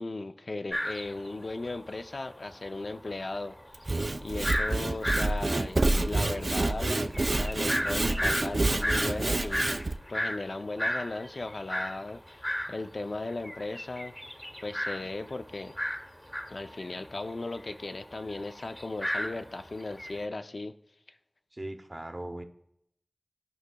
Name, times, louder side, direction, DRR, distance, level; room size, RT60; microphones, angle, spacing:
voice 1, 0.0-14.1 14.6-15.8 16.5-20.7, left 2 dB, 80° left, 8 dB, 0.5 m, -37 dB
sound 1, 0.7-1.9 2.2-2.3 2.5-12.7 13.1-20.2, equal, 15° left, 0.8 m, -34 dB
Sawing / Wood, 3.7-9.9, right 2 dB, 60° right, 0.3 m, -28 dB
voice 2, 21.5-22.4, right 1 dB, 35° right, 6 dB, 0.7 m, -39 dB
14.0 x 5.1 x 2.3 m, 0.75 s
wide cardioid pair, 45°, 0 cm